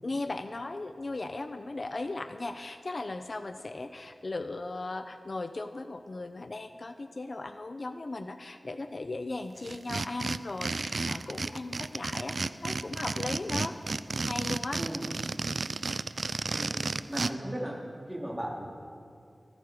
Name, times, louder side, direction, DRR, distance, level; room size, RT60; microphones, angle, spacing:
voice 1, 0.0-12.4 12.6-13.8 14.2-14.8, left 2 dB, 50° left, 8 dB, 0.5 m, -37 dB
sound 1, 9.6-17.3, right 3 dB, 70° right, 0.4 m, -32 dB
voice 2, 17.1-17.8 18.1-18.7, right 1 dB, 15° right, -3 dB, 2.9 m, -36 dB
16.0 x 15.0 x 4.8 m, 2.4 s
wide cardioid pair, 85°, 0 cm